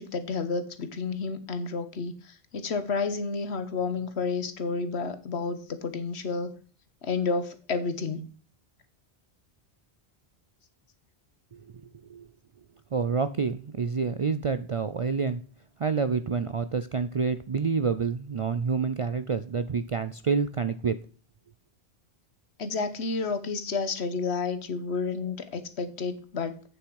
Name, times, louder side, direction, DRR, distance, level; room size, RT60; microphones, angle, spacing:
voice 1, 0.0-2.1 2.5-6.5 7.0-8.2 22.6-26.6, left 4 dB, 85° left, 11 dB, 1.4 m, -30 dB
voice 2, 12.9-15.4 15.8-21.0, right 5 dB, 55° right, 12 dB, 0.3 m, -28 dB
8.5 x 7.1 x 4.7 m, 0.40 s
omnidirectional pair, 1.1 m